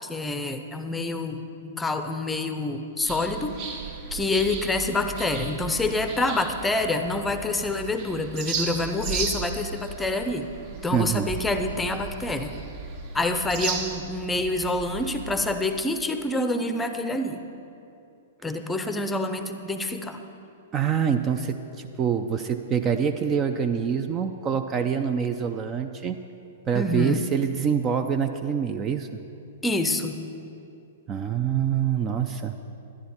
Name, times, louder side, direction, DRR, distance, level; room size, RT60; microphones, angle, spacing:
voice 1, 0.0-3.5 4.1-10.5 10.8-12.5 13.1-17.4 18.4-20.2 26.7-27.3 29.6-30.2, left 2 dB, 10° left, 7 dB, 0.7 m, -27 dB
sound 1, 3.1-15.5, right 5 dB, 40° right, 1.0 m, -35 dB
voice 2, 10.9-11.3 20.7-26.2 26.7-29.1 31.1-32.6, right 7 dB, 25° right, 8 dB, 0.5 m, -25 dB
11.5 x 11.0 x 4.3 m, 2.7 s
figure-of-eight pair, 110°, 0 cm